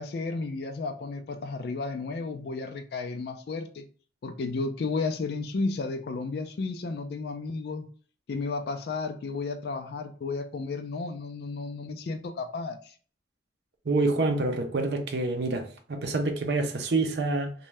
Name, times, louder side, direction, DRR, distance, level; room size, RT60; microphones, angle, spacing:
voice 1, 0.0-3.8 4.2-7.9 8.3-12.9, left 3 dB, 60° left, 0.3 m, -33 dB
voice 2, 13.9-17.5, right 2 dB, 65° right, 0.6 m, -27 dB
2.6 x 2.3 x 3.1 m
head